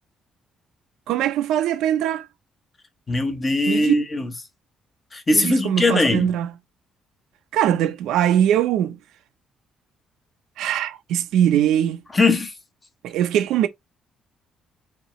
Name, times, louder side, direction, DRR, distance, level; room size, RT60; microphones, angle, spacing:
voice 1, 1.1-2.3 3.7-3.9 5.3-6.5 7.5-9.0 10.6-12.0 13.0-13.7, right 10 dB, 85° right, 0.6 m, -21 dB
voice 2, 3.1-4.3 5.1-6.3 12.1-12.5, left 2 dB, 20° left, 0.8 m, -20 dB
5.3 x 2.9 x 3.1 m
cardioid pair, 170°, 0 cm